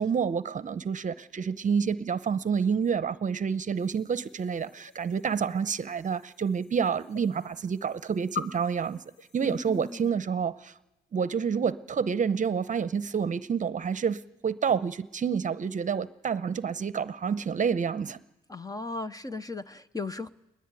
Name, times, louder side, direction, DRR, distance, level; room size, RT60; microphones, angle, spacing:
voice 1, 0.0-9.0 9.3-10.7 11.1-18.2, right 6 dB, 40° right, 14 dB, 0.8 m, -28 dB
sound 1, 3.7-10.1, left 8 dB, 60° left, 2.0 m, -45 dB
voice 2, 9.4-10.2 18.5-20.3, left 3 dB, 20° left, 12 dB, 0.8 m, -37 dB
21.0 x 20.5 x 9.1 m, 0.95 s
cardioid pair, 90°, 20 cm